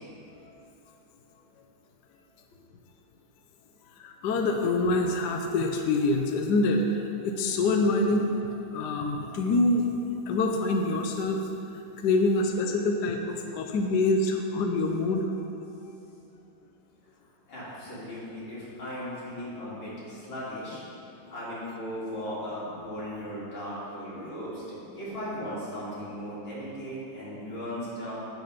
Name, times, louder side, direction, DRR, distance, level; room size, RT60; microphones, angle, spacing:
voice 1, 4.0-9.9 10.3-11.5 11.7-15.3, left 2 dB, 65° left, 3 dB, 1.2 m, -26 dB
voice 2, 17.5-20.8 21.3-28.1, equal, 85° left, -9 dB, 3.8 m, -37 dB
8.9 x 8.0 x 5.8 m, 2.7 s
omnidirectional pair, 2.2 m